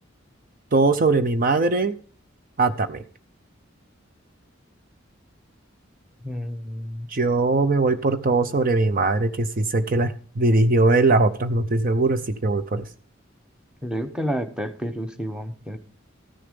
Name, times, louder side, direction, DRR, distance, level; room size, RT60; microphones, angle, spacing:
voice 1, 0.7-1.9 2.6-3.0 7.1-12.9, right 3 dB, 45° right, 11 dB, 0.6 m, -21 dB
voice 2, 6.2-7.1 13.8-15.8, equal, 5° right, 8 dB, 0.9 m, -30 dB
14.0 x 6.7 x 5.2 m, 0.43 s
head